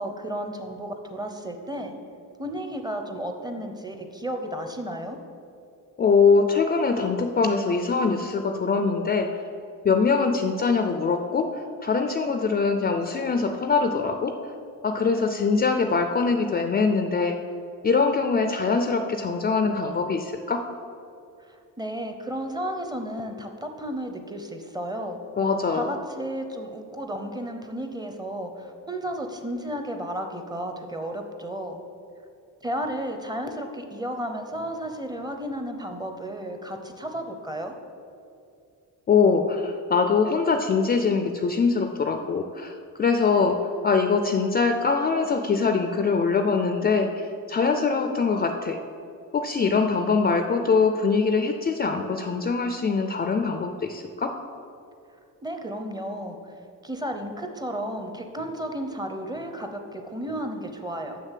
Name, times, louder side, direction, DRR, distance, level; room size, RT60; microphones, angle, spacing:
voice 1, 0.0-1.9 2.4-5.2 21.4-25.2 25.7-31.8 32.6-37.8 55.4-56.4 56.8-61.2, right 1 dB, 10° right, 5 dB, 0.6 m, -33 dB
voice 2, 6.0-9.3 9.8-11.5 11.8-14.3 14.8-17.4 17.8-20.6 25.4-25.9 39.1-42.7 43.0-43.6 43.8-48.8 49.3-54.3, left 4 dB, 30° left, 6 dB, 0.4 m, -23 dB
6.7 x 6.6 x 7.4 m, 2.5 s
cardioid pair, 160°, 34 cm